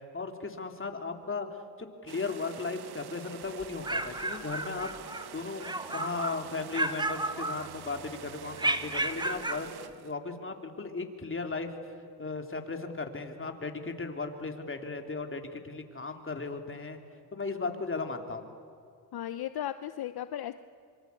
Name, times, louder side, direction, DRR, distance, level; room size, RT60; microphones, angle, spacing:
voice 1, 0.1-1.5 2.0-4.9 5.3-11.7 12.2-17.0 17.3-18.5, left 4 dB, 30° left, 4 dB, 3.4 m, -36 dB
sound 1, 2.1-10.1, right 8 dB, 65° right, 1.4 m, -46 dB
sound 2, 3.6-5.3 5.6-6.4 6.7-8.0 8.6-9.7, right 1 dB, 10° right, 1.5 m, -33 dB
voice 2, 19.1-20.5, left 11 dB, 65° left, 12 dB, 0.9 m, -35 dB
25.5 x 24.5 x 8.5 m, 2.4 s
cardioid pair, 75°, 41 cm